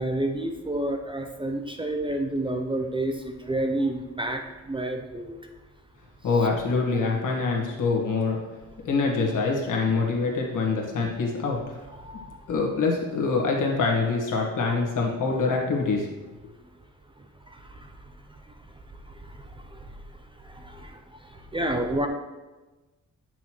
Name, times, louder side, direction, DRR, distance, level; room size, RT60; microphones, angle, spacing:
voice 1, 0.0-4.4 4.7-5.3 12.0-12.4 17.5-17.9 19.2-19.4 19.7-19.8 20.4-21.0 21.3-22.1, right 1 dB, 15° right, 4 dB, 0.5 m, -29 dB
voice 2, 6.2-8.4 8.8-11.7 12.5-16.1, left 4 dB, 80° left, -1 dB, 1.6 m, -25 dB
9.1 x 6.1 x 3.0 m, 1.2 s
wide cardioid pair, 170°, 31 cm